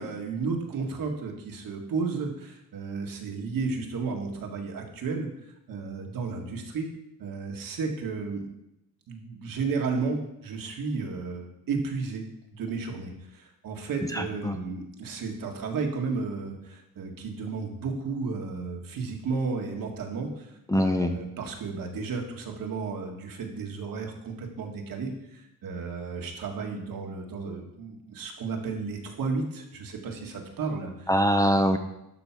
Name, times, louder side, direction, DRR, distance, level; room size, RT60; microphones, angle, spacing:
voice 1, 0.0-5.3 5.7-6.9 7.2-8.5 9.1-12.2 12.5-31.1, right 4 dB, 70° right, 2 dB, 1.8 m, -33 dB
voice 2, 14.1-14.6 20.7-21.2 31.1-31.8, equal, 10° left, 5 dB, 0.6 m, -23 dB
12.0 x 4.7 x 6.0 m, 0.84 s
wide cardioid pair, 145°, 35 cm